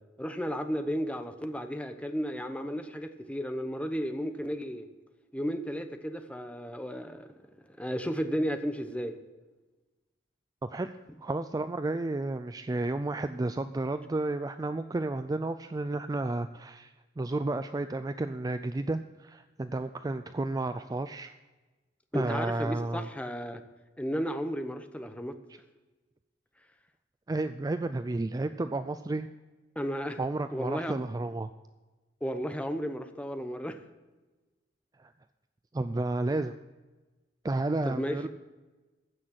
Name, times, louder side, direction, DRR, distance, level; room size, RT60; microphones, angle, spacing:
voice 1, 0.0-4.9 5.3-7.3 7.8-9.2 22.1-23.6 24.0-25.3 29.8-30.2 30.5-31.0 32.2-33.8 37.8-38.2, equal, 5° left, 7 dB, 0.9 m, -33 dB
voice 2, 10.6-10.9 11.2-21.3 22.1-23.0 27.3-29.3 30.2-31.5 35.0-35.1 35.7-36.5 37.4-38.3, right 2 dB, 20° right, 10 dB, 0.4 m, -32 dB
15.0 x 6.4 x 7.5 m, 1.2 s
head